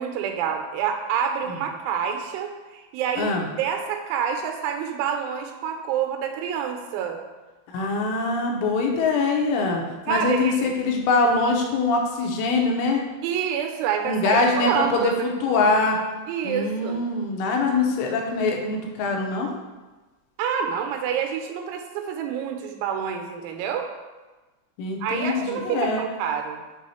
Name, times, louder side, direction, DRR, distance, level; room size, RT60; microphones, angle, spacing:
voice 1, 0.0-7.2 10.1-10.7 13.2-15.1 16.3-17.0 20.4-23.9 25.0-26.6, right 8 dB, 85° right, 4 dB, 3.0 m, -27 dB
voice 2, 7.7-13.1 14.0-16.0 16.4-19.6 24.8-26.0, left 3 dB, 85° left, 1 dB, 3.3 m, -23 dB
7.7 x 3.1 x 4.2 m, 1.2 s
omnidirectional pair, 5.5 m